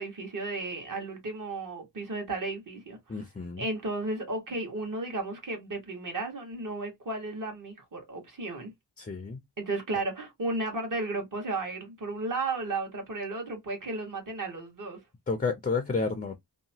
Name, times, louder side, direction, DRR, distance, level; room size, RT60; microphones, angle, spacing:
voice 1, 0.0-3.2 3.6-8.7 9.6-15.0, right 2 dB, 50° right, 1.3 m, -34 dB
voice 2, 3.1-3.7 9.0-9.4 15.3-16.4, left 4 dB, 20° left, 0.4 m, -30 dB
2.9 x 2.2 x 2.6 m
wide cardioid pair, 90°, 41 cm